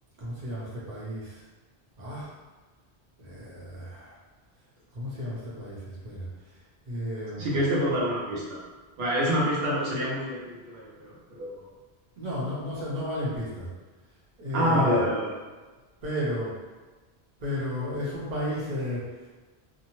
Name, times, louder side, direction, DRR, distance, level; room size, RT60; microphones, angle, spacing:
voice 1, 0.2-1.4 2.0-2.3 3.2-4.2 4.9-6.3 6.9-7.5 12.2-13.7 14.4-15.0 16.0-16.6 17.4-19.0, equal, 45° right, -7 dB, 0.9 m, -33 dB
voice 2, 7.4-8.6 9.0-11.5 14.5-15.3, equal, 75° right, -5 dB, 0.9 m, -26 dB
2.6 x 2.1 x 2.9 m, 1.3 s
omnidirectional pair, 1.1 m